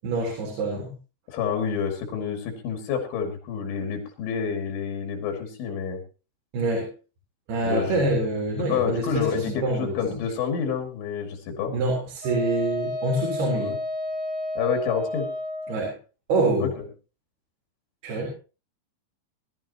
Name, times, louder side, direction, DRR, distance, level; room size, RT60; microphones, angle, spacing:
voice 1, 0.0-0.9 6.5-6.9 7.5-10.0 11.7-13.8 15.7-16.0 16.3-16.7 18.0-18.3, right 2 dB, 60° right, -2 dB, 5.9 m, -26 dB
voice 2, 1.3-6.0 7.6-8.3 8.7-11.7 13.6-13.8 14.6-15.3 16.6-16.8, left 7 dB, 80° left, 4 dB, 4.8 m, -28 dB
Wind instrument woodwind instrument, 12.2-15.8, left 1 dB, 80° right, 10.5 m, -31 dB
21.5 x 12.5 x 3.0 m, 0.33 s
omnidirectional pair, 5.3 m